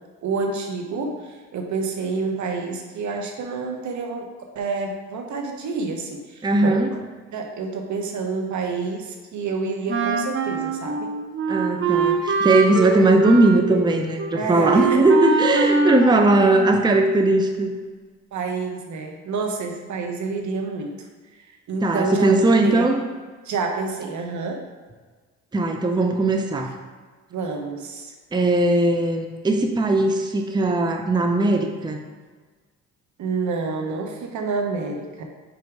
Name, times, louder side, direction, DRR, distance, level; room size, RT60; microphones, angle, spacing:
voice 1, 0.2-6.8 7.3-11.1 14.3-15.0 16.4-16.8 18.3-21.1 21.4-22.3 22.6-22.9 23.4-24.6 27.3-28.1 33.2-35.2, right 4 dB, 70° right, 3 dB, 1.0 m, -28 dB
voice 2, 6.4-6.9 11.5-17.7 21.8-23.0 25.5-26.7 28.3-32.0, right 2 dB, 15° right, 4 dB, 0.6 m, -19 dB
Wind instrument woodwind instrument, 9.9-17.1, right 5 dB, 40° right, 0.8 m, -24 dB
5.2 x 4.6 x 4.6 m, 1.4 s
cardioid pair, 90°, 30 cm